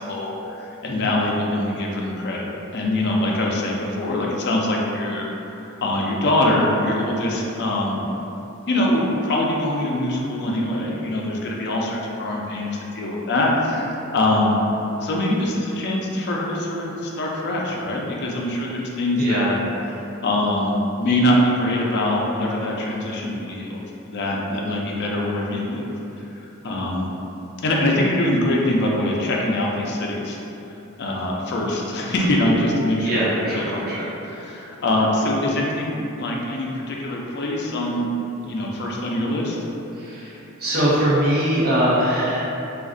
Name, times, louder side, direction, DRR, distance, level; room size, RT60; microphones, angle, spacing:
voice 1, 0.0-2.5 2.7-5.2 5.5-8.0 8.7-14.6 15.0-19.6 20.2-23.8 24.1-25.9 26.6-27.1 27.6-30.4 31.0-33.8 34.3-38.1 38.5-39.6, left 1 dB, 50° left, -2 dB, 0.4 m, -23 dB
voice 2, 33.0-34.0 39.9-42.4, right 1 dB, 45° right, -8 dB, 0.8 m, -22 dB
2.4 x 2.4 x 3.7 m, 3.0 s
head